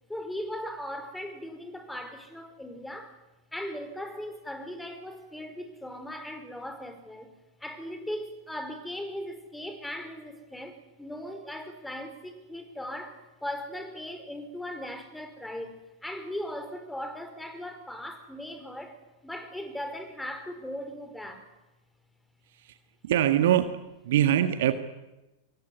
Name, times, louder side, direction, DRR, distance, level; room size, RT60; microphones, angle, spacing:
voice 1, 0.1-3.2 3.5-7.3 7.6-19.0 19.2-21.5, left 1 dB, 5° left, 5.0 m, -38 dB
voice 2, 23.0-23.8 24.0-24.7, right 11 dB, 55° right, 1.6 m, -23 dB
26.0 x 22.5 x 9.7 m
figure-of-eight pair, 90°, 0 cm